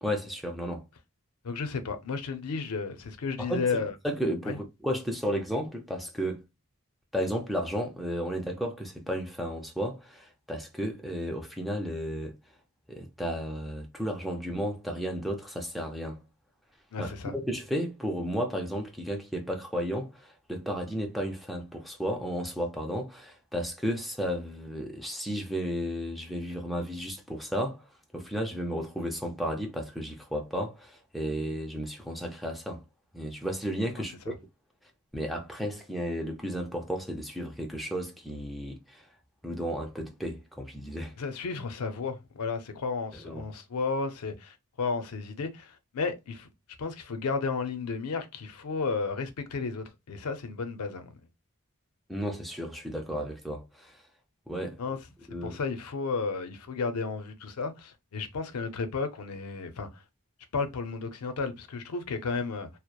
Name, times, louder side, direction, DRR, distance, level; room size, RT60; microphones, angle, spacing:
voice 1, 0.0-0.8 3.4-3.7 4.0-6.4 7.1-12.3 12.9-16.2 17.0-27.8 28.1-32.8 33.1-34.4 35.1-39.0 39.4-41.1 43.2-43.5 52.1-53.9 54.5-54.8 55.3-55.6, equal, ahead, 0.4 m, -33 dB
voice 2, 1.4-3.9 4.5-4.6 16.9-17.3 34.3-34.4 41.2-46.5 46.8-51.1 54.8-55.0 55.4-60.0 60.5-62.7, left 4 dB, 85° left, 0.5 m, -33 dB
2.8 x 2.0 x 2.2 m
head